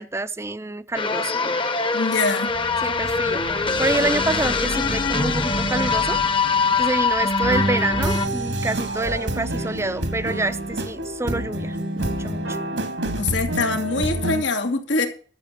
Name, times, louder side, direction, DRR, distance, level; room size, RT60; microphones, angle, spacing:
voice 1, 0.0-1.6 2.8-3.4 3.8-6.2 6.8-12.6, right 2 dB, 15° right, 0.5 m, -27 dB
sound 1, 0.9-8.3, left 4 dB, 30° left, 0.9 m, -23 dB
voice 2, 1.9-2.5 13.2-15.1, left 3 dB, 90° left, 2.3 m, -23 dB
sound 2, 2.5-11.3, left 1 dB, 70° left, 3.1 m, -36 dB
sound 3, 7.4-14.4, right 1 dB, 85° right, 2.2 m, -27 dB
12.5 x 7.4 x 6.6 m
head